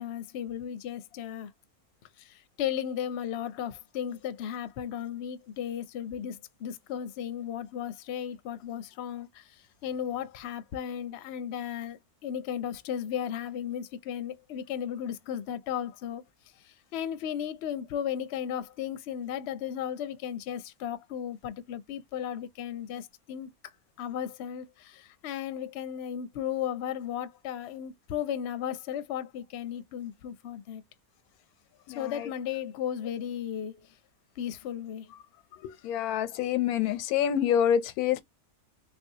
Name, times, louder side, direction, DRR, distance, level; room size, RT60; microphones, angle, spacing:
voice 1, 0.0-1.5 2.2-16.2 16.6-23.5 24.0-30.8 31.9-33.9 34.4-35.1, left 9 dB, 60° left, 0.7 m, -35 dB
voice 2, 31.9-32.3 35.6-38.2, left 9 dB, 90° left, 1.1 m, -27 dB
3.6 x 2.6 x 2.7 m
omnidirectional pair, 1.5 m